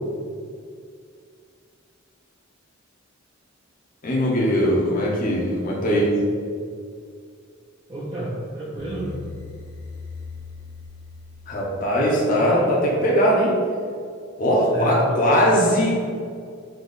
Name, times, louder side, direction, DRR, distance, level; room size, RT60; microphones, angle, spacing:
voice 1, 4.0-6.1 11.5-13.6 14.4-15.9, equal, 45° left, -4 dB, 0.7 m, -20 dB
voice 2, 7.9-9.1 14.7-15.3 15.7-15.9, right 1 dB, 25° right, -7 dB, 0.5 m, -30 dB
sound 1, 8.8-12.8, left 4 dB, 80° left, 0.9 m, -40 dB
3.9 x 2.9 x 3.8 m, 2.2 s
head